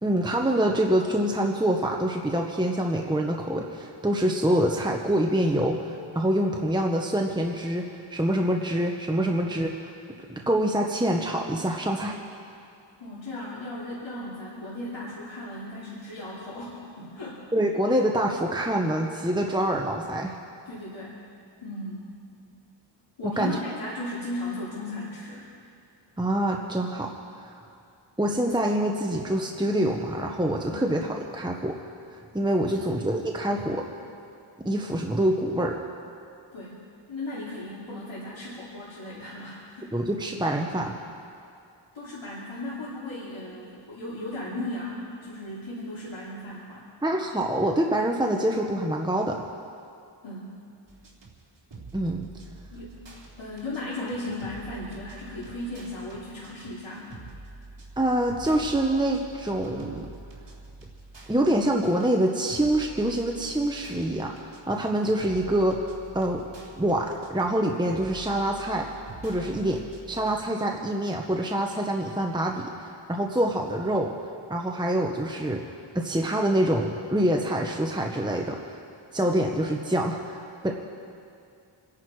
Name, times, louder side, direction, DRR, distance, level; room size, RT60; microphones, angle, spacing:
voice 1, 0.0-9.9 10.5-12.2 17.5-20.3 23.2-23.6 26.2-27.1 27.4-27.6 28.2-31.7 32.1-33.8 34.6-35.7 39.9-40.9 47.0-49.4 51.9-52.3 58.0-60.1 61.3-64.3 64.7-66.4 66.8-68.9 69.2-69.8 70.1-74.1 74.5-78.8 79.1-80.7, right 1 dB, 10° right, 1 dB, 1.0 m, -26 dB
voice 2, 13.0-17.4 20.7-21.2 21.6-22.0 23.2-25.5 30.6-30.9 32.8-33.0 36.5-36.8 37.1-39.9 41.9-46.9 50.2-50.5 52.7-53.0 53.4-57.2 69.3-69.7, left 1 dB, 80° left, -8 dB, 2.9 m, -36 dB
sound 1, 50.9-70.4, right 2 dB, 65° right, 3.2 m, -46 dB
27.5 x 11.0 x 4.8 m, 2.5 s
wide cardioid pair, 95°, 46 cm